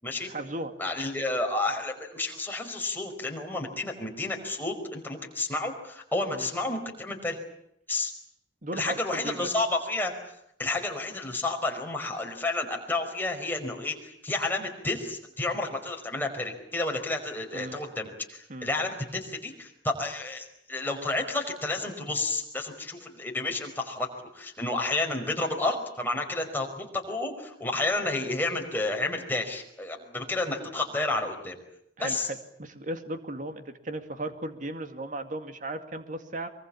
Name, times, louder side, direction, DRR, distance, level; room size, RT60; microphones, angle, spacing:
voice 1, 0.3-0.7 6.3-6.5 8.6-9.5 17.5-17.8 18.5-18.7 32.0-36.5, right 1 dB, 45° right, 8 dB, 2.3 m, -36 dB
voice 2, 0.8-7.4 7.9-8.1 8.7-10.1 10.6-24.1 24.3-31.5 32.0-32.3, left 2 dB, 10° left, 2 dB, 5.0 m, -31 dB
24.0 x 24.0 x 8.7 m, 0.76 s
head